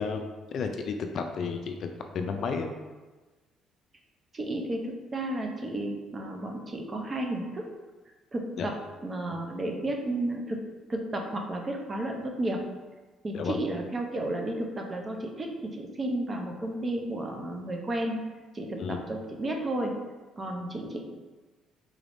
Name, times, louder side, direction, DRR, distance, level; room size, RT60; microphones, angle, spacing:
voice 1, 0.0-2.7 8.6-8.7 13.3-13.6 18.8-19.0, left 5 dB, 55° left, 5 dB, 0.3 m, -32 dB
voice 2, 4.3-7.7 8.3-8.8 9.0-10.6 10.9-12.6 13.2-18.2 18.5-19.9 20.4-21.0, right 1 dB, 25° right, 2 dB, 0.5 m, -32 dB
3.9 x 3.4 x 2.5 m, 1.3 s
cardioid pair, 130°, 0 cm